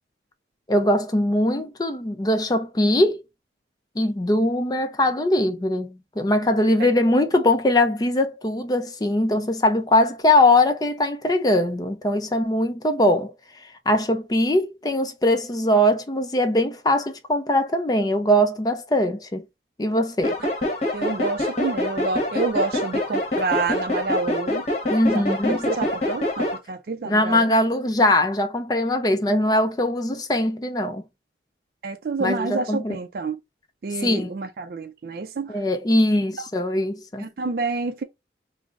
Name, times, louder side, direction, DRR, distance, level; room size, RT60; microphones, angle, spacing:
voice 1, 0.7-3.2 4.0-19.5 19.8-20.4 24.9-25.7 27.0-31.0 32.2-33.0 33.9-34.3 35.5-37.3, left 1 dB, 20° left, 0.4 m, -21 dB
sound 1, 20.2-26.6, left 1 dB, 40° left, 1.0 m, -25 dB
voice 2, 20.9-24.6 25.1-27.5 31.8-33.4 33.8-35.6 37.2-38.0, right 4 dB, 55° right, 0.4 m, -28 dB
3.6 x 2.0 x 3.5 m
head